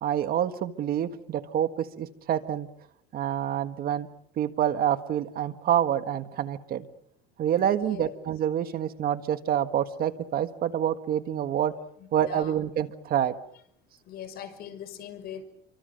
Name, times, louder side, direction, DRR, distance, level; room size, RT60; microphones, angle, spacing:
voice 1, 0.0-2.7 3.1-4.1 4.4-6.8 7.4-11.7 12.1-13.4, right 10 dB, 45° right, 9 dB, 1.6 m, -27 dB
voice 2, 7.8-8.1 12.2-12.5 14.1-15.4, left 9 dB, 50° left, 7 dB, 5.9 m, -40 dB
29.0 x 24.5 x 6.6 m, 0.68 s
cardioid pair, 135°, 21 cm